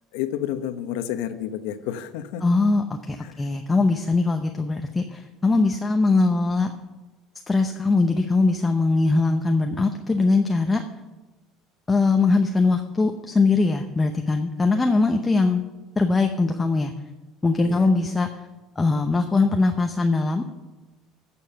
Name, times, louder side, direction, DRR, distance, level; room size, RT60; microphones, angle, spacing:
voice 1, 0.1-2.4 3.2-3.5 17.6-17.9, left 11 dB, 90° left, 10 dB, 1.0 m, -30 dB
voice 2, 2.4-6.7 7.5-10.8 11.9-15.6 16.0-16.9 17.4-18.4 18.8-20.4, left 3 dB, 15° left, 5 dB, 0.7 m, -21 dB
14.0 x 7.1 x 5.7 m, 1.2 s
cardioid pair, 135°, 0 cm